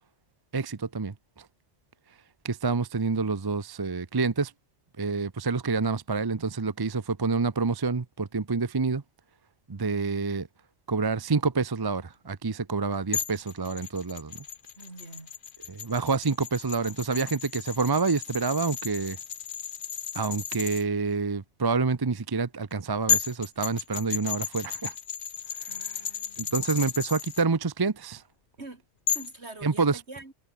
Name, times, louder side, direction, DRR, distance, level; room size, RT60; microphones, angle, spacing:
voice 1, 0.5-1.5 2.4-4.5 5.0-9.0 9.7-10.5 10.9-14.4 15.7-19.2 20.1-24.9 25.7-26.0 26.4-28.2 29.6-30.0, right 4 dB, 25° right, 0.6 m, -28 dB
sound 1, 13.1-20.8 22.7-22.8 23.1-27.4 29.1-29.4, left 8 dB, 50° left, 0.9 m, -33 dB
voice 2, 14.8-15.3 25.7-26.7 28.6-28.8 29.1-30.3, right 2 dB, 60° right, 3.9 m, -45 dB
omnidirectional pair, 1.3 m